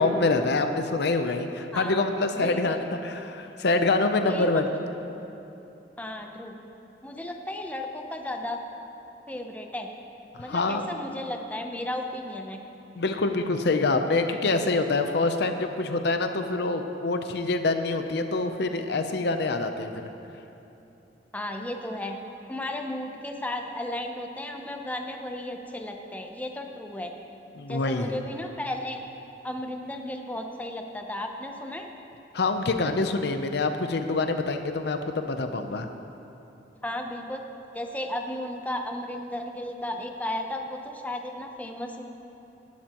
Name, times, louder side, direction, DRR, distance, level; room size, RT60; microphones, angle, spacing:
voice 1, 0.0-4.7 10.5-10.9 13.0-20.1 27.6-28.1 32.3-35.9, left 3 dB, 65° left, 7 dB, 0.7 m, -26 dB
voice 2, 1.7-2.8 4.2-4.6 6.0-6.5 7.0-8.6 9.3-9.9 10.4-12.6 21.3-22.2 22.5-27.1 27.7-29.0 29.4-31.9 36.8-37.4 37.7-42.0, left 1 dB, 10° left, 3 dB, 0.7 m, -34 dB
18.5 x 11.5 x 3.0 m, 2.9 s
head